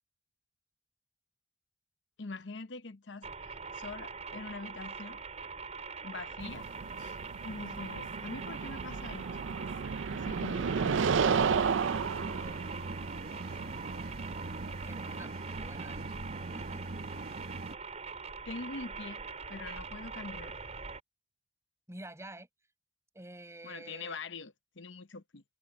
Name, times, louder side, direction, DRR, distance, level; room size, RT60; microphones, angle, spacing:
voice 1, 2.2-5.2 6.0-6.7 7.0-7.2 7.4-9.5 10.1-11.1 13.6-13.7 18.4-20.5 23.6-25.4, left 3 dB, 70° left, 0.9 m, -44 dB
sound 1, 3.2-21.0, right 4 dB, 40° right, 4.5 m, -43 dB
English Countryside (Suffolk) - Car Drive-by - Distant, 6.4-15.2, right 6 dB, 90° right, 0.5 m, -33 dB
sound 2, 11.0-17.8, right 2 dB, 55° right, 0.9 m, -42 dB
voice 2, 12.3-12.8 14.8-16.1 16.5-16.9 21.9-22.5 23.1-24.2, right 1 dB, 15° right, 4.9 m, -49 dB
head